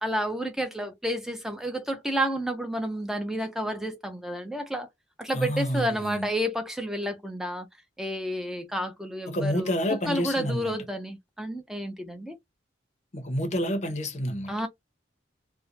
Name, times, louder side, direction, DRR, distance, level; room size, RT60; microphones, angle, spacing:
voice 1, 0.0-4.9 5.2-7.7 8.0-9.7 10.1-12.4 14.5-14.7, equal, ahead, 0.6 m, -30 dB
voice 2, 5.3-6.3 9.3-10.8 13.1-14.5, equal, 35° left, 0.7 m, -29 dB
2.8 x 2.1 x 2.4 m
head